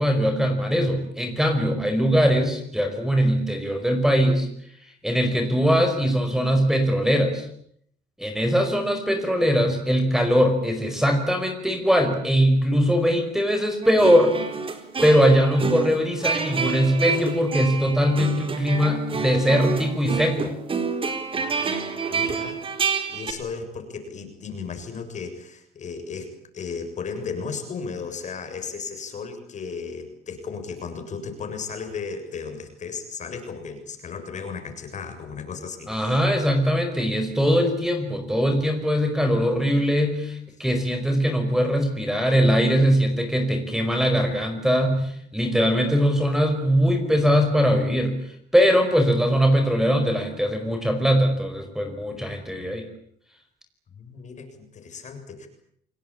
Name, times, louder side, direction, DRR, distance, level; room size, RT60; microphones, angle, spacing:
voice 1, 0.0-4.5 5.0-7.5 8.2-14.3 15.0-20.5 35.9-48.2 48.5-52.8, equal, 5° right, 6 dB, 5.2 m, -21 dB
sound 1, 13.8-23.3, right 5 dB, 30° right, 4.2 m, -28 dB
voice 2, 22.1-22.6 23.1-36.2 53.9-55.5, left 5 dB, 45° left, 6 dB, 7.1 m, -35 dB
29.0 x 19.5 x 8.8 m, 0.68 s
cardioid pair, 110°, 17 cm